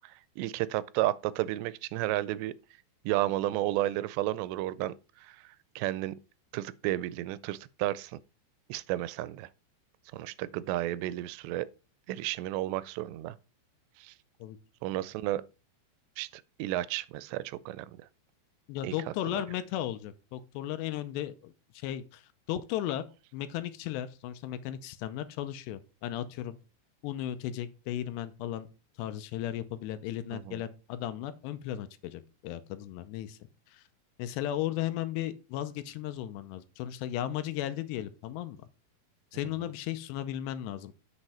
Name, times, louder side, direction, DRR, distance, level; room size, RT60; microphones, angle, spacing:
voice 1, 0.0-2.6 3.1-6.2 6.5-8.2 8.7-9.5 10.1-11.7 12.1-13.4 14.0-14.1 14.8-15.4 16.2-18.1 18.8-19.4 30.3-30.6, right 15 dB, 90° right, 2.8 m, -32 dB
voice 2, 18.7-22.2 22.5-23.0 23.3-26.6 27.0-28.7 29.0-33.4 33.7-33.8 34.2-38.6 39.3-40.9, left 12 dB, 80° left, 2.8 m, -35 dB
8.0 x 6.6 x 4.2 m
omnidirectional pair, 4.9 m